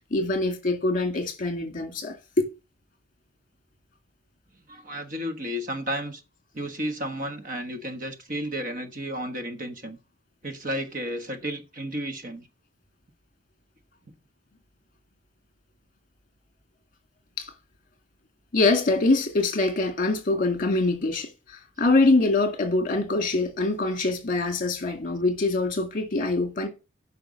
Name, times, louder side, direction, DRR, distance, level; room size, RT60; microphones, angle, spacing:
voice 1, 0.1-2.5 17.4-17.5 18.5-21.3 21.8-26.7, left 2 dB, 45° left, 2.1 m, -24 dB
voice 2, 4.7-6.2 6.5-10.0 10.4-12.5, equal, 45° right, 1.3 m, -32 dB
9.4 x 5.7 x 6.3 m
head